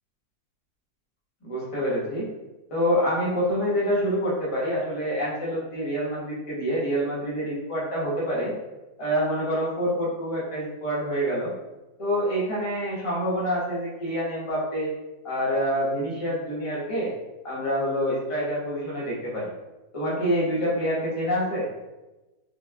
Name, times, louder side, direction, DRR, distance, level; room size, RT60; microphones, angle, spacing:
voice 1, 1.4-2.3 2.7-8.5 9.0-11.5 12.0-14.9 15.2-17.1 17.4-19.5 19.9-21.7, equal, 25° left, -6 dB, 1.0 m, -26 dB
5.1 x 2.3 x 2.3 m, 1.1 s
omnidirectional pair, 1.7 m